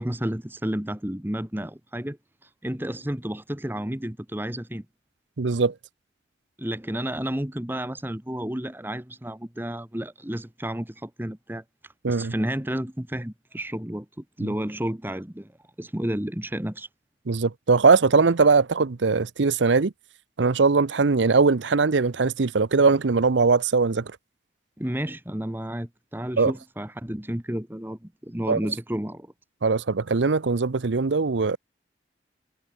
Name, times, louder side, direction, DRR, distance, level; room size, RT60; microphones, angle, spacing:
voice 1, 0.0-4.8 6.6-11.6 12.1-15.5 15.8-16.9 24.8-29.3, right 1 dB, 10° right, 1.3 m, -31 dB
voice 2, 5.4-5.7 12.0-12.3 17.3-19.9 20.4-24.1 26.4-26.5 28.5-28.6 29.6-31.6, right 4 dB, 85° right, 0.7 m, -21 dB
head